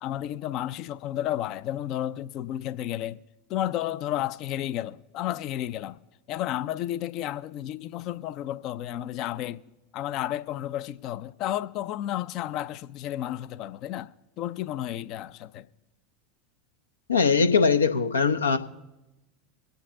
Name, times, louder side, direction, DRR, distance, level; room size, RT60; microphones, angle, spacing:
voice 1, 0.0-3.2 3.5-6.0 6.3-9.6 9.9-15.6, left 12 dB, 45° left, 0.5 m, -32 dB
voice 2, 17.1-18.6, left 5 dB, 80° left, 0.7 m, -21 dB
23.0 x 8.1 x 3.8 m
figure-of-eight pair, 80°, 0 cm